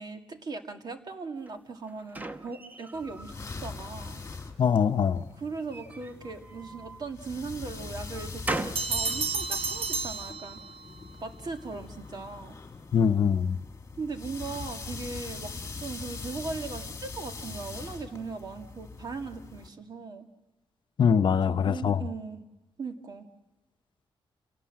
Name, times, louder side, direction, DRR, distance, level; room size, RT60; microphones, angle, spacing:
voice 1, 0.0-4.2 5.4-10.6 11.2-12.6 14.0-15.5 15.8-20.3 21.3-22.4 22.8-23.3, right 4 dB, 45° right, 6 dB, 2.1 m, -39 dB
sound 1, 1.5-3.4 3.8-4.6 5.6-7.0 7.6-8.9, right 2 dB, 20° right, 1.0 m, -39 dB
sound 2, 2.9-19.7, left 4 dB, 30° left, 2.2 m, -42 dB
voice 2, 4.6-5.2 12.9-13.6 21.0-22.0, left 7 dB, 55° left, 9 dB, 0.8 m, -23 dB
sound 3, 8.8-11.0, right 4 dB, 65° right, 1.6 m, -31 dB
29.0 x 18.0 x 7.5 m, 1.1 s
wide cardioid pair, 125°, 9 cm